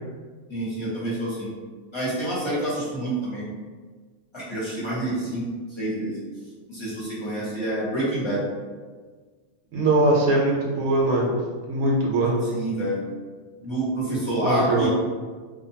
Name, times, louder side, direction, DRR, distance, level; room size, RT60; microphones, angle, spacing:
voice 1, 0.5-1.5 1.9-3.4 4.3-6.2 6.7-8.4 12.5-13.0 13.6-14.9, right 1 dB, 25° left, -9 dB, 0.8 m, -27 dB
voice 2, 9.7-11.3 11.7-12.4 14.4-14.9, right 2 dB, 70° right, -3 dB, 0.9 m, -21 dB
2.7 x 2.1 x 2.7 m, 1.5 s
omnidirectional pair, 1.4 m